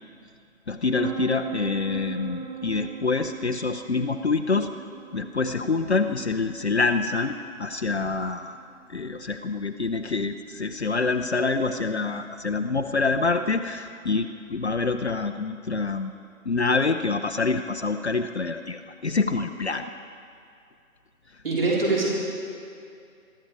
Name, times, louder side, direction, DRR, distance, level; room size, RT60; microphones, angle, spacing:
voice 1, 0.7-4.7 5.1-8.6 8.9-16.1 16.5-19.9, left 4 dB, 50° left, 7 dB, 0.7 m, -26 dB
sound 1, 0.9-12.4, right 6 dB, 90° right, 5.1 m, -41 dB
voice 2, 21.4-22.1, right 3 dB, 40° right, -5 dB, 4.3 m, -23 dB
22.5 x 13.0 x 4.9 m, 2.4 s
figure-of-eight pair, 150°, 42 cm